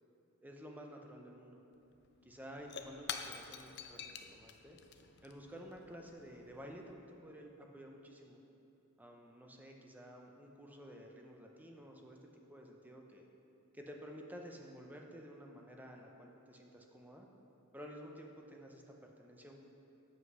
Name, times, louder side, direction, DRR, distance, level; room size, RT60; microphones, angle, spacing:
voice 1, 0.4-1.6 2.2-4.8 5.2-8.4 9.0-13.3 13.7-17.3 17.7-19.6, equal, 10° right, 1 dB, 0.6 m, -52 dB
Shatter / Crushing, 2.0-6.9, left 7 dB, 50° left, 0.5 m, -48 dB
8.0 x 5.4 x 5.5 m, 2.9 s
head